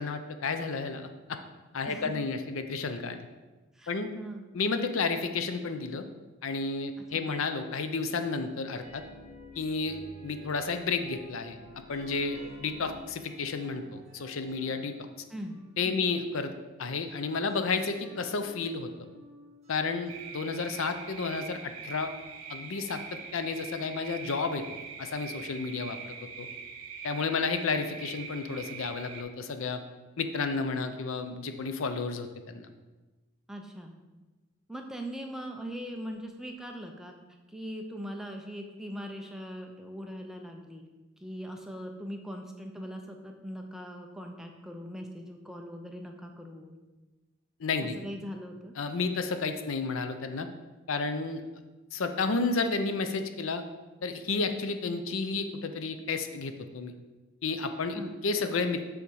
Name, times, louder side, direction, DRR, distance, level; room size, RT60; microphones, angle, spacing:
voice 1, 0.0-1.4 1.7-3.2 3.9-4.1 4.5-6.0 6.4-9.0 9.6-11.6 11.9-14.9 15.8-16.5 16.8-18.9 19.7-22.1 22.5-24.6 25.0-26.5 27.0-29.8 30.2-32.7 47.6-48.0 48.8-50.5 50.9-51.4 51.9-53.6 54.0-56.9 57.4-58.8, left 4 dB, 70° left, 8 dB, 0.5 m, -31 dB
voice 2, 3.7-4.5 7.0-7.3 15.3-15.6 15.9-16.0 33.5-33.9 34.7-37.1 37.5-40.8 41.2-46.7 47.8-48.7 57.9-58.2, equal, ahead, 2 dB, 0.5 m, -41 dB
sound 1, 8.8-16.6 17.1-23.6, left 1 dB, 30° right, 0.9 m, -52 dB
sound 2, 20.1-29.2, right 6 dB, 90° right, 0.8 m, -43 dB
6.8 x 3.6 x 6.3 m, 1.2 s
head